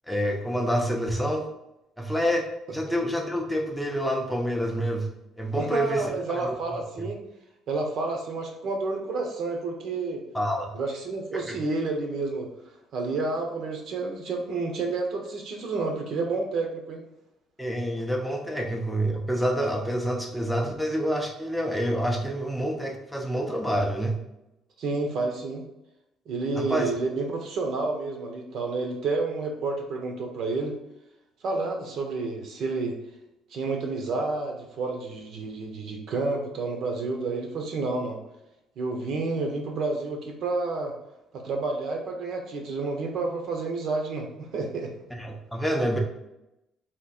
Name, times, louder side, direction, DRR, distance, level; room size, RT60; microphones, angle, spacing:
voice 1, 0.1-1.5 2.0-5.1 5.4-6.5 10.3-10.7 11.3-11.6 17.6-24.2 26.6-26.9 45.1-46.0, equal, ahead, 1 dB, 0.6 m, -27 dB
voice 2, 5.5-7.2 7.7-10.2 10.7-12.5 12.9-17.0 24.8-25.6 26.3-30.7 31.4-33.0 33.5-38.2 38.8-40.9 41.3-44.9, right 3 dB, 55° right, 2 dB, 0.8 m, -30 dB
3.6 x 2.9 x 4.3 m, 0.89 s
cardioid pair, 160°, 0 cm